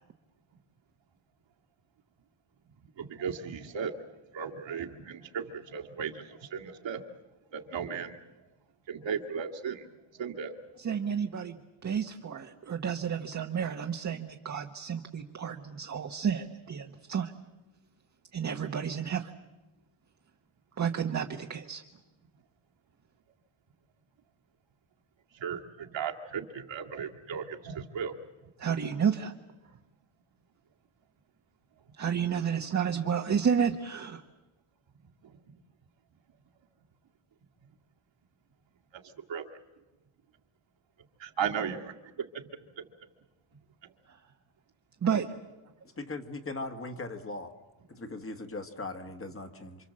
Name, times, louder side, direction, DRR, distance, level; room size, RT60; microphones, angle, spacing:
voice 1, 3.0-3.9 4.3-7.0 7.5-8.2 8.9-9.8 10.2-10.6 25.3-28.2 39.3-39.4 41.2-41.9 42.2-42.3 42.8-42.9, right 7 dB, 65° right, 2 dB, 2.2 m, -35 dB
voice 2, 10.8-11.5 11.8-17.3 18.3-19.3 20.8-21.8 28.6-29.3 32.0-34.2 44.1-44.2 45.0-45.4, right 7 dB, 35° right, 4 dB, 1.1 m, -31 dB
voice 3, 46.0-47.5 48.0-49.8, left 2 dB, 25° left, 7 dB, 1.5 m, -39 dB
28.5 x 25.5 x 7.5 m, 1.0 s
wide cardioid pair, 175°, 48 cm